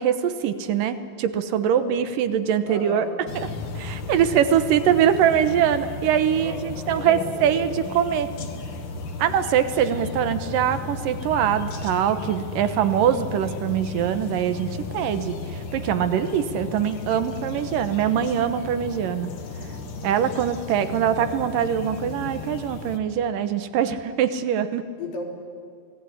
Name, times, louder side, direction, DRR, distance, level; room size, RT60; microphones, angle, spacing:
voice 1, 0.0-3.1 3.8-8.3 9.2-15.4 15.7-19.3 20.0-24.9, right 9 dB, 80° right, 11 dB, 2.6 m, -23 dB
voice 2, 1.7-2.1 2.7-3.2 6.3-7.7 25.0-25.2, left 2 dB, 80° left, 0 dB, 5.3 m, -35 dB
sound 1, 3.3-23.0, left 4 dB, 45° left, 1.7 m, -35 dB
28.5 x 19.0 x 9.9 m, 2.2 s
omnidirectional pair, 4.0 m